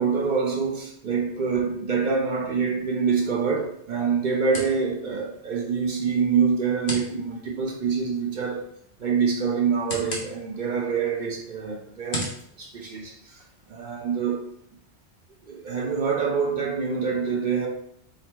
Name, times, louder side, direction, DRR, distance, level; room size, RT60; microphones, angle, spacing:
voice 1, 0.0-8.7 9.0-12.3 12.6-13.4 13.7-14.5 15.5-17.7, right 5 dB, 50° right, 0.7 m, -26 dB
sound 1, 2.8-13.7, left 1 dB, 50° left, 1.1 m, -41 dB
3.8 x 2.1 x 4.4 m
omnidirectional pair, 1.2 m